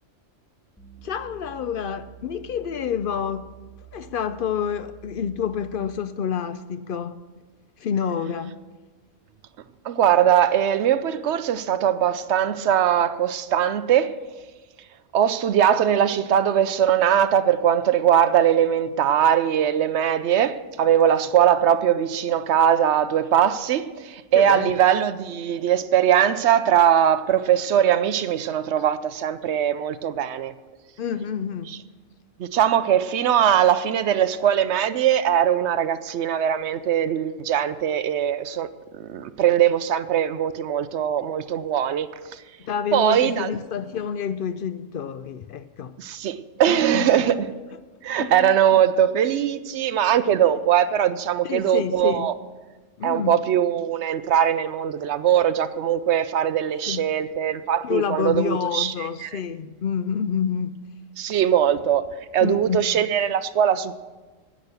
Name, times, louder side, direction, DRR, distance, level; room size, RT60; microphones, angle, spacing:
sound 1, 0.8-6.1, right 14 dB, ahead, 1.2 m, -47 dB
voice 1, 1.0-3.5 3.9-7.2 7.8-8.6 24.3-24.7 31.0-31.7 42.6-45.9 46.7-47.3 48.2-48.8 51.4-52.3 53.0-53.4 56.9-57.1 57.8-60.8 62.4-62.9, left 7 dB, 65° left, 0.5 m, -28 dB
voice 2, 9.8-14.1 15.1-30.5 31.7-31.8 32.4-38.7 38.9-42.1 42.3-42.4 42.9-43.5 46.0-47.5 48.0-52.3 53.0-58.9 59.2-59.3 61.2-62.0 62.3-63.9, right 10 dB, 65° right, 0.8 m, -21 dB
10.0 x 8.6 x 6.7 m
omnidirectional pair, 1.3 m